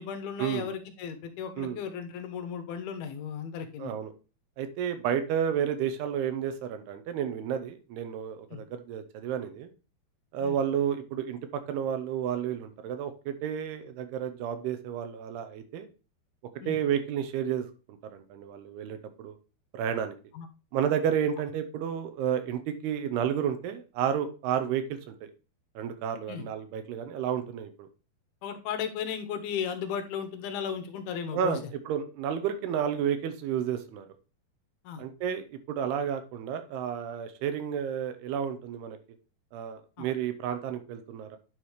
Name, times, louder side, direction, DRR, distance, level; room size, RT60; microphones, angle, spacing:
voice 1, 0.0-4.0 8.5-8.6 10.4-10.6 16.6-16.8 20.3-20.5 26.3-26.4 28.4-31.6 34.8-35.0 40.0-40.1, left 7 dB, 75° left, 8 dB, 2.5 m, -35 dB
voice 2, 3.8-4.1 4.6-9.7 10.3-11.4 11.7-15.9 16.7-19.4 19.7-20.1 20.7-25.3 25.8-27.7 31.3-34.1 35.0-39.0 39.5-41.4, right 8 dB, 80° right, 9 dB, 2.8 m, -31 dB
9.6 x 4.8 x 3.1 m, 0.32 s
omnidirectional pair, 4.8 m